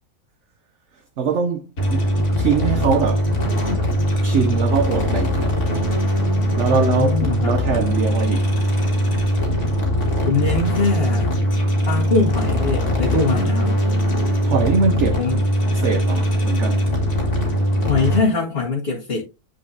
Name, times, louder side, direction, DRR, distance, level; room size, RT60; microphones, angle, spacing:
voice 1, 1.2-2.0 2.4-3.3 4.2-5.6 6.6-8.5 14.4-15.2 15.7-16.9, right 5 dB, 60° right, 1.0 m, -22 dB
sound 1, 1.8-18.2, equal, 85° left, 2.9 m, -20 dB
voice 2, 6.7-7.7 10.2-11.3 11.9-13.8 15.2-15.4 17.8-19.2, left 4 dB, 40° left, 1.8 m, -22 dB
10.0 x 4.7 x 2.7 m
omnidirectional pair, 1.6 m